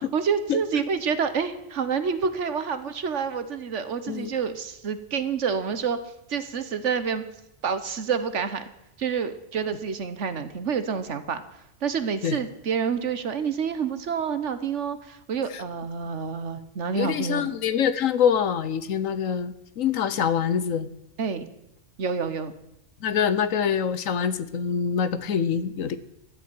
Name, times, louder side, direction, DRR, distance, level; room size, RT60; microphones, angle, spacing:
voice 1, 0.1-6.0 6.3-7.2 7.6-8.6 9.0-11.4 11.8-17.5 21.2-21.5 22.0-22.5, right 6 dB, 65° right, 11 dB, 1.4 m, -28 dB
voice 2, 16.9-20.9 23.0-26.0, left 7 dB, 90° left, 14 dB, 1.3 m, -25 dB
13.0 x 8.6 x 9.6 m, 0.84 s
omnidirectional pair, 1.3 m